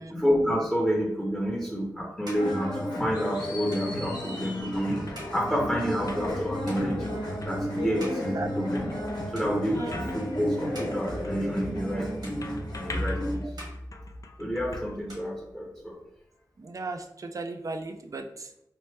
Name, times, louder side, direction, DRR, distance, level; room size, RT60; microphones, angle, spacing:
voice 1, 0.1-7.0 7.4-8.9 9.3-12.4 12.8-13.5 14.4-16.0, equal, 10° left, -2 dB, 0.8 m, -29 dB
sound 1, 1.4-9.1 9.3-10.0 10.5-11.9 12.2-13.1 13.4-14.6 14.9-16.0, equal, 70° right, 1.3 m, -49 dB
sound 2, 2.3-13.3, equal, 70° left, 0.9 m, -33 dB
sound 3, 4.2-15.7, left 1 dB, 50° left, 0.3 m, -40 dB
voice 2, 16.6-18.5, right 3 dB, 50° right, 6 dB, 0.4 m, -37 dB
3.0 x 2.0 x 3.2 m, 0.78 s
cardioid pair, 40°, 7 cm